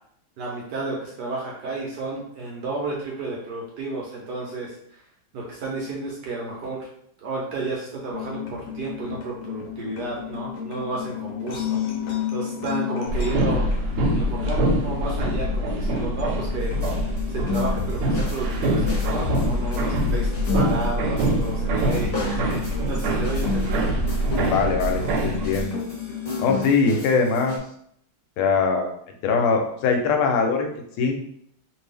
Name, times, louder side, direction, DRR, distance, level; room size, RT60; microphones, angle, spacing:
voice 1, 0.4-5.0 5.3-6.9 7.2-11.8 12.3-13.6 14.1-16.7 17.3-22.6 22.9-23.8, right 3 dB, 65° right, -2 dB, 1.1 m, -31 dB
sound 1, 8.1-26.7, left 8 dB, 70° left, 1.3 m, -33 dB
sound 2, 13.1-25.6, right 1 dB, 90° right, 1.5 m, -24 dB
sound 3, 16.6-27.6, left 3 dB, 30° left, 1.1 m, -35 dB
voice 2, 24.3-25.8 26.4-27.6 28.4-28.9 29.2-30.7 31.0-31.1, left 5 dB, 85° left, 4 dB, 1.5 m, -22 dB
3.2 x 2.6 x 3.3 m, 0.69 s
omnidirectional pair, 2.3 m